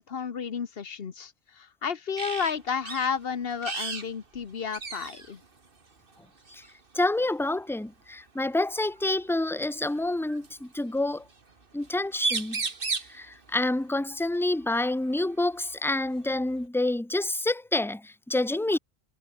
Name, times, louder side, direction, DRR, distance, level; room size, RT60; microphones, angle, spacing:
voice 1, 0.0-5.4, left 6 dB, 55° left, 1.3 m, -32 dB
sound 1, 2.2-2.5 2.9-3.1 3.6-4.1 4.3-4.4 4.7-5.3 6.5-6.7 8.4-8.5 9.6-10.5 11.8-11.9 12.1-13.2 15.1-15.2 15.6-16.6, right 4 dB, 50° right, 2.1 m, -33 dB
voice 2, 6.9-11.2 11.7-12.6 13.1-18.8, left 2 dB, 5° left, 0.6 m, -28 dB
omnidirectional pair, 1.2 m